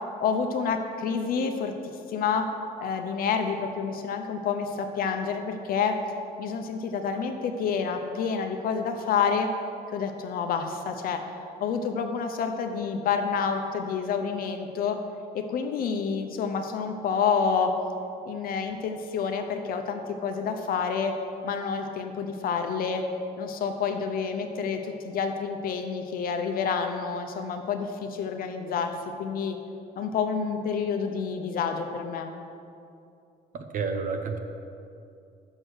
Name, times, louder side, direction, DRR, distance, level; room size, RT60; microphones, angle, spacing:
voice 1, 0.2-1.7 2.1-2.5 2.8-6.0 6.4-9.5 9.9-11.2 11.6-15.0 15.3-17.7 18.2-21.1 21.4-23.0 23.4-29.6 30.0-32.3, left 6 dB, 60° left, 5 dB, 0.6 m, -28 dB
voice 2, 33.5-34.4, right 4 dB, 50° right, 5 dB, 0.6 m, -30 dB
6.4 x 6.3 x 6.3 m, 2.6 s
cardioid pair, 110°, 17 cm